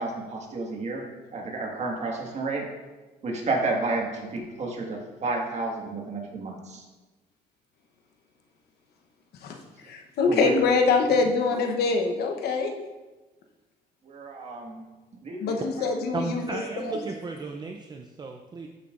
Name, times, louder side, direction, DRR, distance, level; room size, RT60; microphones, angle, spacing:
voice 1, 0.0-2.7 3.2-6.8 10.3-10.5 14.0-14.8 15.2-15.5, right 3 dB, 40° right, 0 dB, 1.7 m, -31 dB
voice 2, 9.8-12.7 15.4-17.0, left 4 dB, 70° left, 4 dB, 1.0 m, -24 dB
voice 3, 16.1-18.7, right 4 dB, 25° right, 3 dB, 0.5 m, -34 dB
12.5 x 5.6 x 2.5 m, 1.2 s
cardioid pair, 110°, 17 cm